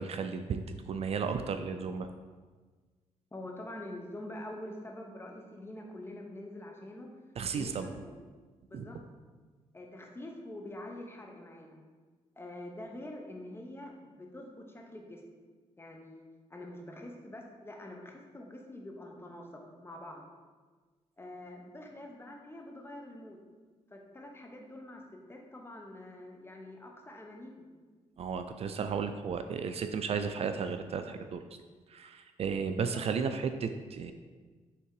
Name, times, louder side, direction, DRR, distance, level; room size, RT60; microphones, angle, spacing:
voice 1, 0.0-2.1 7.4-7.9 8.7-8.9 28.2-31.4 31.9-34.1, right 6 dB, 55° right, 8 dB, 0.4 m, -34 dB
voice 2, 3.3-7.1 7.5-8.1 8.7-9.0 9.7-11.8 12.4-15.2 15.8-16.2 16.5-20.2 21.2-23.4 23.9-25.0 25.3-27.7 32.9-33.0, left 1 dB, 20° left, 1 dB, 0.9 m, -45 dB
5.8 x 3.6 x 4.7 m, 1.4 s
cardioid pair, 100°, 12 cm